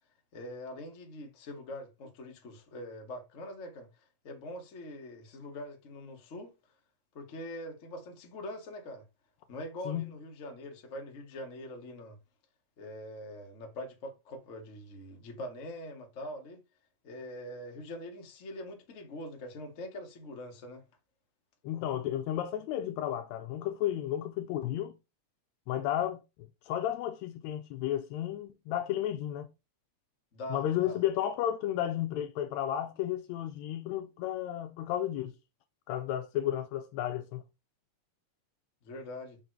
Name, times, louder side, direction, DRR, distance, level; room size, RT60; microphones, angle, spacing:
voice 1, 0.3-3.9 4.2-6.5 7.1-9.0 9.5-12.2 12.8-16.6 17.0-20.8 30.3-31.0 38.8-39.4, left 1 dB, 50° left, 0.9 m, -43 dB
voice 2, 21.6-24.9 25.7-26.2 26.7-29.5 30.5-35.3 35.9-37.4, left 11 dB, 80° left, 1.7 m, -33 dB
5.5 x 3.9 x 4.5 m
omnidirectional pair, 3.4 m